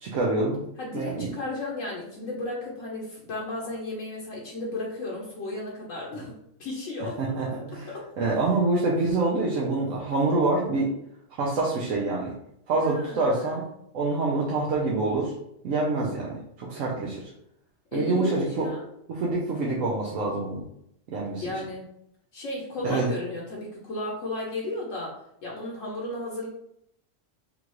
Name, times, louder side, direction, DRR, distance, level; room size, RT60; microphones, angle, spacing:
voice 1, 0.0-0.6 0.9-1.3 7.2-7.9 8.2-10.9 11.4-12.3 12.7-13.6 13.9-15.3 15.6-17.2 17.9-18.7 19.1-20.6 21.1-21.4 22.8-23.1, right 3 dB, 70° right, -4 dB, 1.1 m, -26 dB
voice 2, 0.8-6.3 6.6-7.2 7.9-8.0 12.8-13.7 17.9-18.8 21.4-21.9 22.3-25.1 25.4-26.5, left 2 dB, 70° left, -4 dB, 1.2 m, -34 dB
5.4 x 2.4 x 3.0 m, 0.76 s
omnidirectional pair, 1.4 m